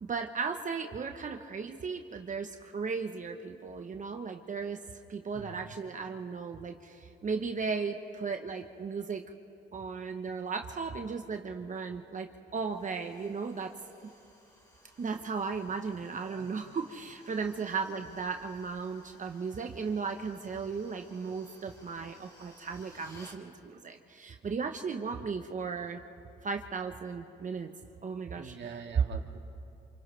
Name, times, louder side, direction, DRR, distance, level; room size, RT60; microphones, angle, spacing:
voice 1, 0.0-4.8 5.1-9.2 9.7-13.7 14.0-14.1 15.0-26.0 26.4-27.7 28.0-28.5, right 5 dB, 40° right, 5 dB, 1.1 m, -36 dB
sound 1, 12.6-23.4, equal, 15° left, 3.5 m, -59 dB
voice 2, 16.1-16.5 17.4-17.5 28.4-29.4, right 7 dB, 65° right, 3 dB, 1.9 m, -45 dB
28.5 x 28.0 x 3.4 m, 2.8 s
cardioid pair, 90°, 20 cm